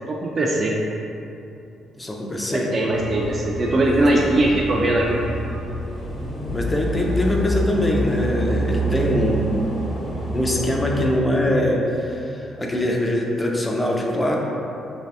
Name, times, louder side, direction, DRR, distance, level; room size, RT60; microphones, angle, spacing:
voice 1, 0.1-0.7 2.5-5.2, right 1 dB, 45° right, -2 dB, 0.4 m, -20 dB
voice 2, 2.0-2.7 4.4-4.5 6.5-9.5 10.3-14.4, left 1 dB, 20° left, -1 dB, 0.5 m, -23 dB
sound 1, 2.9-11.1, equal, 50° left, 1.0 m, -27 dB
3.2 x 2.7 x 3.3 m, 2.8 s
supercardioid pair, 65°, 0 cm